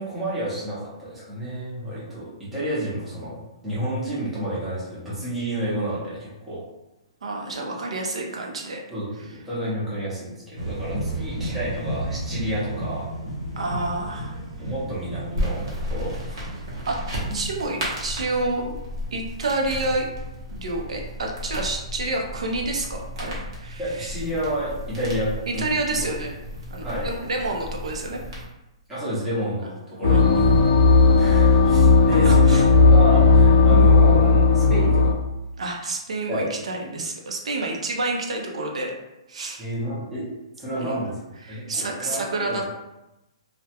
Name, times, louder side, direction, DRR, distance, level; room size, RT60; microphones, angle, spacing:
voice 1, 0.0-6.6 8.9-13.1 14.6-16.4 23.8-25.6 26.0-26.1 26.8-27.1 28.9-30.3 31.2-32.6 32.9-35.2 36.3-36.5 36.9-37.0 39.6-40.3 40.6-41.2 41.5-42.6, right 1 dB, 5° right, -10 dB, 0.5 m, -30 dB
voice 2, 7.2-8.8 13.6-14.4 16.9-17.0 17.3-18.7 19.1-20.1 20.5-24.1 25.5-26.3 26.7-28.2 30.0-30.8 31.2-31.4 32.1-32.7 35.6-38.9 39.3-39.7 40.8-41.0 41.4-42.6, right 2 dB, 90° right, 1 dB, 0.5 m, -29 dB
sound 1, 10.6-17.6, right 1 dB, 75° right, 0.9 m, -33 dB
sound 2, 15.3-28.4, equal, 50° right, 0.8 m, -34 dB
sound 3, 30.0-35.1, left 3 dB, 55° left, 0.3 m, -15 dB
2.3 x 2.1 x 2.8 m, 0.96 s
hypercardioid pair, 175°, 3 cm